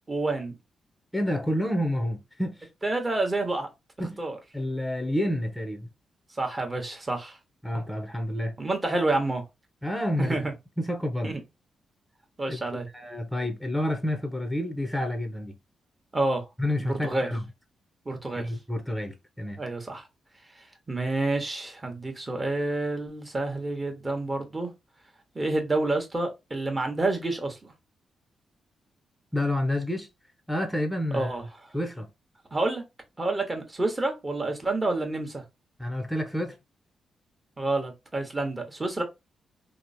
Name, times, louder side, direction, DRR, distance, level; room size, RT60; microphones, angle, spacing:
voice 1, 0.1-0.6 2.8-3.7 4.2-4.4 6.4-7.4 8.6-9.4 10.2-10.5 11.2-11.3 12.4-12.9 16.1-16.4 16.8-17.3 18.1-18.5 19.6-20.0 20.9-24.7 25.3-27.7 31.1-31.4 32.5-32.8 33.2-35.4 37.6-39.0, right 2 dB, 25° right, 1.0 m, -28 dB
voice 2, 1.1-2.7 4.0-4.2 4.5-5.9 7.6-8.6 9.8-10.4 10.8-11.3 12.5-12.6 12.9-15.6 16.6-17.5 18.4-19.6 29.3-30.1 30.5-31.3 31.7-32.1 35.8-36.6, left 1 dB, 5° left, 0.6 m, -29 dB
2.9 x 2.0 x 2.6 m
cardioid pair, 60°, 0 cm